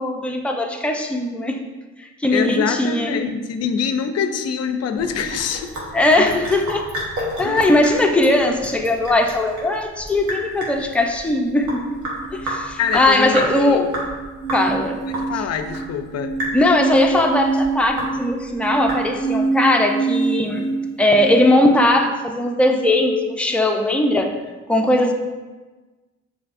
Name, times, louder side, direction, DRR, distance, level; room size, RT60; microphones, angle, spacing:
voice 1, 0.0-1.6 2.0-3.2 5.9-6.8 7.4-12.0 12.3-13.9 14.5-15.0 16.5-20.7 21.0-24.4 24.7-25.1, left 1 dB, 5° left, 2 dB, 0.4 m, -19 dB
voice 2, 2.3-5.8 6.2-6.3 7.4-8.2 12.8-13.9 15.1-16.4, left 7 dB, 55° left, 8 dB, 0.5 m, -25 dB
Sink (filling or washing) / Drip, 5.0-19.4, right 1 dB, 80° right, 1.4 m, -31 dB
sound 1, 12.2-21.9, right 4 dB, 35° right, 0.8 m, -26 dB
7.0 x 2.8 x 2.5 m, 1.3 s
cardioid pair, 90°, 30 cm